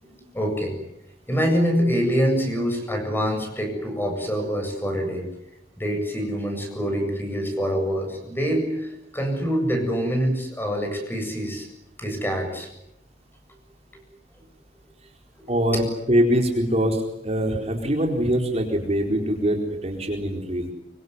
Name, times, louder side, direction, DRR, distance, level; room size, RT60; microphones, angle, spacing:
voice 1, 0.0-0.7 1.3-5.3 5.8-11.7 12.0-12.7 15.4-15.8, equal, 10° left, 4 dB, 7.8 m, -25 dB
voice 2, 15.5-20.7, equal, 35° right, 2 dB, 4.3 m, -23 dB
25.5 x 24.5 x 9.6 m, 0.83 s
head